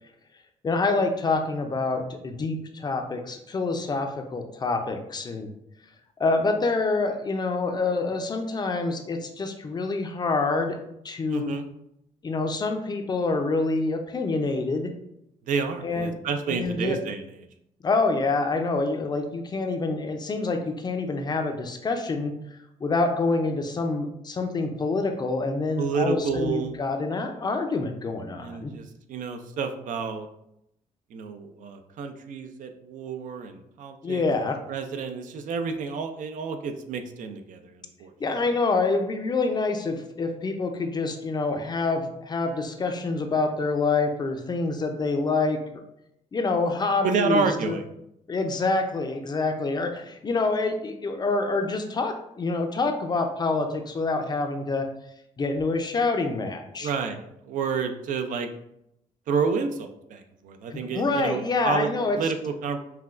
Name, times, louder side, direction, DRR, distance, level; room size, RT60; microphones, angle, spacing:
voice 1, 0.6-5.5 6.2-10.8 11.0-11.5 12.2-14.9 15.8-16.1 16.5-17.0 17.8-22.3 22.8-28.7 34.0-34.6 38.2-45.6 46.3-47.8 48.3-54.9 55.4-56.9 60.7-62.2, left 3 dB, 30° left, 5 dB, 0.5 m, -26 dB
voice 2, 11.3-11.7 15.5-17.4 25.8-26.7 28.4-30.3 31.1-34.2 34.7-38.1 47.0-47.8 56.8-58.5 59.3-62.8, right 5 dB, 70° right, 7 dB, 0.4 m, -29 dB
5.6 x 2.2 x 2.5 m, 0.80 s
cardioid pair, 105°, 14 cm